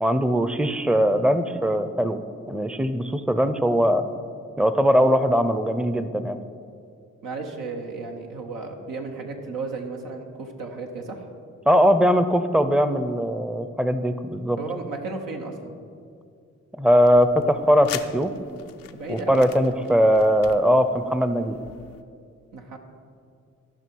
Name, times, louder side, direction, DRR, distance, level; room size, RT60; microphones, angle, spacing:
voice 1, 0.0-2.2 2.5-4.1 4.6-6.4 11.7-14.6 16.8-18.3 19.1-21.6, equal, 5° right, 10 dB, 0.5 m, -20 dB
voice 2, 7.2-11.3 14.6-15.8 18.9-19.5 22.5-22.8, right 3 dB, 85° right, 2 dB, 1.1 m, -34 dB
sound 1, 17.0-22.0, left 10 dB, 85° left, 0.5 m, -42 dB
14.0 x 5.6 x 4.6 m, 2.3 s
supercardioid pair, 50°, 33 cm